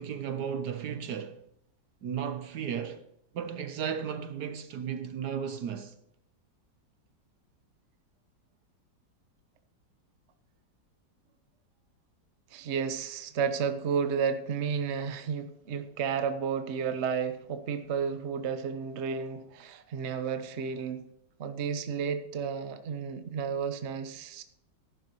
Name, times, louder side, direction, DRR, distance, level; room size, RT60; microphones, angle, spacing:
voice 1, 0.0-1.4 2.0-3.1 3.3-6.0, right 8 dB, 70° right, 1.2 m, -34 dB
voice 2, 12.5-21.1 21.4-24.4, right 6 dB, 45° right, 1.0 m, -32 dB
14.0 x 11.5 x 2.9 m
omnidirectional pair, 2.0 m